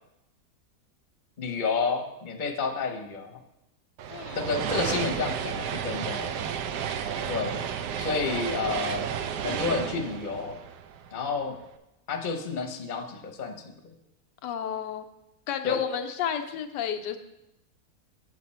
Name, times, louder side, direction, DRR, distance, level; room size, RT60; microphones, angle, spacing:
voice 1, 1.4-3.4 4.3-6.4 7.3-7.6 8.0-9.1 9.4-10.6 11.1-11.6 12.1-13.7 15.6-15.8, left 4 dB, 35° left, 3 dB, 0.9 m, -30 dB
sound 1, 4.0-11.4, right 8 dB, 80° right, 1.2 m, -32 dB
voice 2, 4.1-4.4 7.1-7.5 14.4-15.0 15.5-17.2, left 8 dB, 90° left, 7 dB, 1.3 m, -32 dB
8.0 x 7.5 x 4.2 m, 0.88 s
omnidirectional pair, 1.8 m